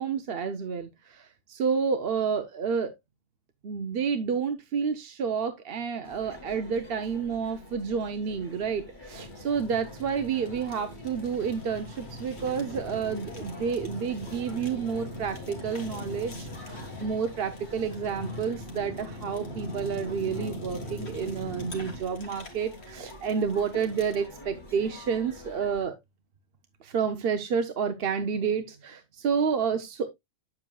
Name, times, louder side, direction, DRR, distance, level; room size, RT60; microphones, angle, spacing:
voice 1, 0.0-2.9 3.6-25.9 26.8-30.1, right 6 dB, 60° right, 0.8 m, -30 dB
sound 1, 6.0-25.8, left 1 dB, 40° left, 2.8 m, -47 dB
Fire, 9.1-24.3, left 1 dB, 60° left, 2.1 m, -41 dB
8.8 x 7.7 x 2.2 m
omnidirectional pair, 1.2 m